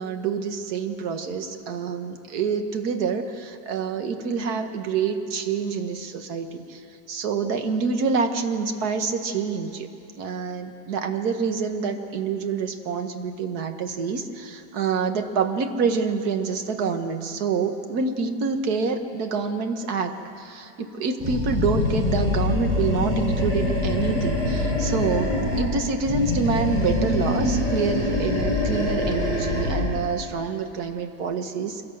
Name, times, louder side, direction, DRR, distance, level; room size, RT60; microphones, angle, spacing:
voice 1, 0.0-6.8 7.1-9.9 10.2-31.8, right 5 dB, 55° right, 6 dB, 1.6 m, -27 dB
Animal, 21.2-25.7 26.0-29.9, left 2 dB, 15° right, 6.0 m, -24 dB
24.0 x 17.0 x 7.7 m, 2.7 s
omnidirectional pair, 2.1 m